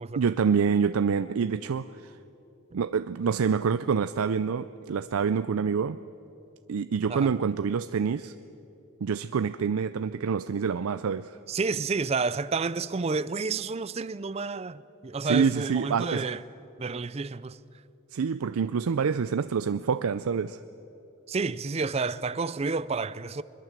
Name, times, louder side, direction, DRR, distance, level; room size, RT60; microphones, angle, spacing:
voice 1, 0.2-2.2 2.7-6.0 6.7-8.3 9.0-11.4 15.2-16.2 18.1-20.6, right 6 dB, 85° right, 0.4 m, -26 dB
voice 2, 11.5-16.4 16.8-17.6 21.3-23.4, right 4 dB, 30° right, 0.4 m, -30 dB
22.0 x 21.5 x 7.4 m
head